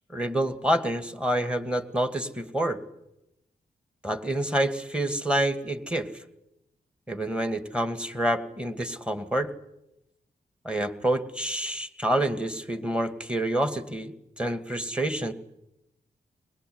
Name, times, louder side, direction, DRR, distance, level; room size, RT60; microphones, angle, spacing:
voice 1, 0.1-2.8 4.0-6.1 7.1-9.5 10.6-15.3, right 1 dB, 5° right, 8 dB, 2.5 m, -27 dB
22.0 x 21.5 x 9.7 m, 0.87 s
cardioid pair, 70°, 17 cm